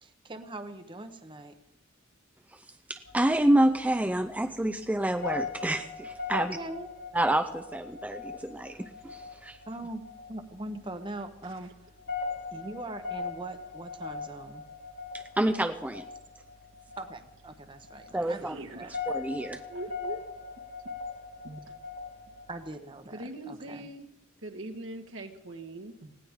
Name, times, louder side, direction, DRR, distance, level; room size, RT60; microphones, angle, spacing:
voice 1, 0.0-1.5 6.3-6.9 9.7-10.0 10.3-11.8 12.5-14.6 17.0-18.9 22.5-23.9, right 2 dB, 25° right, 8 dB, 0.9 m, -41 dB
voice 2, 2.9-6.6 7.1-9.6 15.1-16.0 18.1-18.5 19.1-19.6, right 1 dB, 5° right, 7 dB, 0.5 m, -28 dB
sound 1, 3.0-22.7, left 4 dB, 65° left, 4.2 m, -40 dB
voice 3, 18.2-18.9 19.7-20.3 21.4-21.7 23.1-24.1 24.4-26.1, right 2 dB, 70° right, 4 dB, 1.6 m, -42 dB
19.5 x 16.5 x 3.6 m, 0.87 s
head